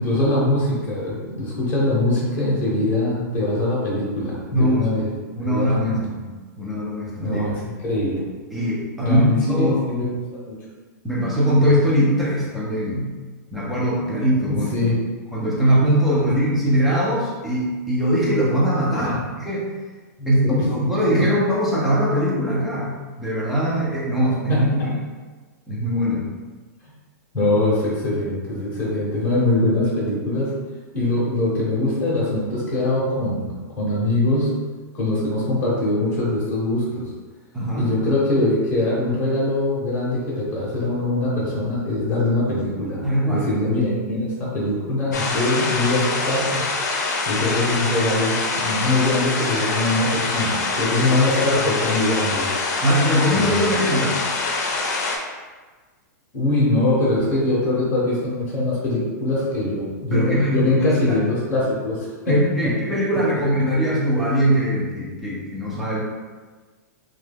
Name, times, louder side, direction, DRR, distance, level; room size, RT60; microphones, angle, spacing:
voice 1, 0.0-5.1 5.4-6.0 7.2-8.3 9.0-10.6 14.5-15.0 18.9-19.2 20.2-20.7 21.2-21.3 24.5-24.9 27.3-30.5 30.9-34.5 34.9-37.1 37.7-43.0 43.3-46.6 47.2-52.6 53.3-53.8 56.3-62.7, left 2 dB, 15° left, -7 dB, 0.9 m, -22 dB
voice 2, 4.5-4.9 5.4-6.3 6.6-7.4 8.5-9.2 9.5-9.8 11.0-13.1 13.5-14.9 15.3-19.7 20.3-22.9 23.2-24.9 25.7-26.3 37.5-37.9 43.0-43.5 52.8-54.2 60.1-61.2 62.3-66.0, equal, ahead, -7 dB, 0.5 m, -21 dB
sound 1, 45.1-55.2, left 3 dB, 65° left, 0.6 m, -25 dB
3.0 x 2.3 x 3.4 m, 1.3 s
supercardioid pair, 170°, 10 cm